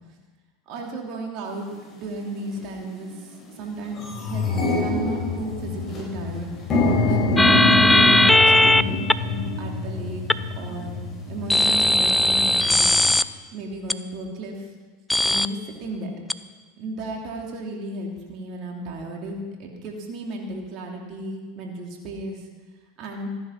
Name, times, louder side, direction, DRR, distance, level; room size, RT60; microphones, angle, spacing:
voice 1, 0.7-1.7 2.0-3.1 3.6-6.5 7.0-10.2 10.5-11.0 11.3-12.9 13.5-14.7 15.2-16.1 16.8-22.5 23.0-23.3, right 2 dB, 50° right, 0 dB, 3.0 m, -34 dB
sound 1, 1.6-1.7 2.5-2.7 3.1-3.2 3.5-13.2, left 3 dB, 30° left, 5.3 m, -26 dB
sound 2, 7.4-8.8 9.1-9.2 10.3-10.4 11.5-13.2 13.9-14.0 15.1-15.5 16.3-16.4, left 1 dB, 5° left, 0.5 m, -17 dB
15.0 x 10.5 x 5.9 m, 1.4 s
hypercardioid pair, 95°, 0 cm